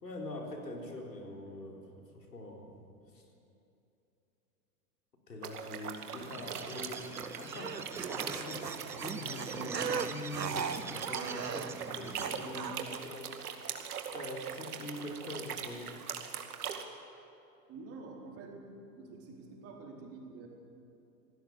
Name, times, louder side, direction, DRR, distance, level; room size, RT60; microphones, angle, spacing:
voice 1, 0.0-2.7 3.1-3.2 5.3-7.8 8.1-13.4 14.1-15.9, left 1 dB, 75° left, 1 dB, 4.2 m, -43 dB
sound 1, 5.4-16.8, right 7 dB, 65° right, 2.3 m, -42 dB
Bird, 6.2-12.8, right 5 dB, 5° right, 0.5 m, -44 dB
sound 2, 7.4-13.0, right 6 dB, 80° right, 1.2 m, -38 dB
voice 2, 17.7-18.6 19.0-20.5, right 4 dB, 30° right, -1 dB, 4.5 m, -47 dB
26.5 x 18.5 x 7.3 m, 2.7 s
figure-of-eight pair, 105°, 49 cm